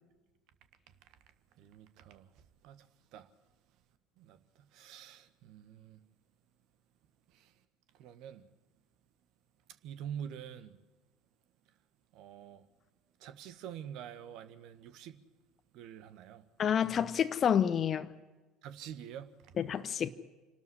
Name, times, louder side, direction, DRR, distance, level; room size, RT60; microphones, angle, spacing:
voice 1, 1.6-2.3 2.6-2.9 3.1-3.3 4.2-4.4 4.7-6.0 7.3-7.5 8.0-8.5 9.8-10.8 12.1-12.7 13.2-15.2 15.7-16.4 18.6-19.3, right 9 dB, 55° right, 1.5 m, -46 dB
voice 2, 16.6-18.1 19.6-20.1, left 8 dB, 35° left, 0.9 m, -29 dB
27.0 x 13.0 x 9.9 m
figure-of-eight pair, 65°, 0 cm